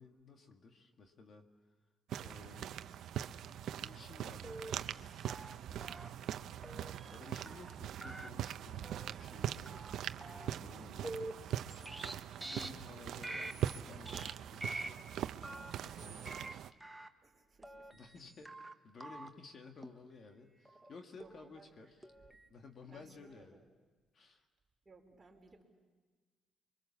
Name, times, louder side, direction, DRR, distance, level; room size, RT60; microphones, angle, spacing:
voice 1, 0.0-1.5 2.2-2.8 3.8-5.1 5.6-6.4 7.1-9.8 10.3-15.0 15.7-16.6 17.9-18.5 18.8-22.1 22.5-23.6 24.1-24.5, left 4 dB, 50° left, 4 dB, 1.9 m, -56 dB
sound 1, 2.1-16.7, right 11 dB, 75° right, 0.7 m, -42 dB
sound 2, 4.4-5.0 5.3-5.5 5.8-6.1 6.6-7.2 7.5-7.7 8.0-8.3 8.8-9.1 9.6-9.9 10.2-10.5 11.0-12.1 12.4-12.7 13.2-13.8 14.1-14.3 14.6-14.9 15.4-16.5 16.8-17.1 17.6-18.2 18.5-18.7 19.0-19.3 19.8-19.9 20.7-20.9 21.2-21.5 22.0-22.5, right 2 dB, 5° right, 1.1 m, -46 dB
voice 2, 16.0-16.4 17.2-17.9 21.2-21.7 22.2-22.4 22.9-23.6 24.8-25.6, right 3 dB, 25° right, 0 dB, 4.3 m, -61 dB
28.0 x 23.5 x 7.3 m, 1.4 s
cardioid pair, 105°, 0 cm